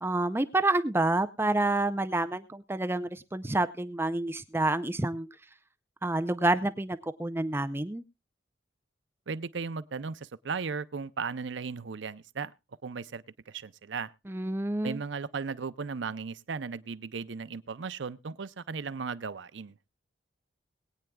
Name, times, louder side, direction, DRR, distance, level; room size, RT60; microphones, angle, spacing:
voice 1, 0.0-5.3 6.0-8.0 14.3-15.0, right 2 dB, 10° right, 0.5 m, -28 dB
voice 2, 9.3-12.5 12.8-14.1 14.8-19.7, right 5 dB, 75° right, 0.6 m, -36 dB
21.5 x 9.0 x 2.3 m
head